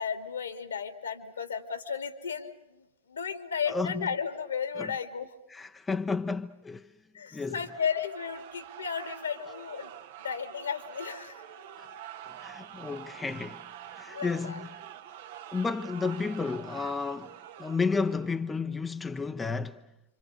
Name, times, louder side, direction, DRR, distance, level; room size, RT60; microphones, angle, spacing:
voice 1, 0.0-5.3 7.1-9.9 10.2-11.4 14.1-14.6, left 6 dB, 70° left, 2.4 m, -34 dB
voice 2, 3.7-4.1 5.5-6.9 7.3-7.6 11.8-11.9 12.4-13.6 13.9-14.6 15.5-19.8, left 4 dB, 10° left, 1.0 m, -32 dB
sound 1, 7.6-18.5, right 11 dB, 55° right, 1.4 m, -46 dB
28.5 x 26.5 x 6.7 m
figure-of-eight pair, 90°, 0 cm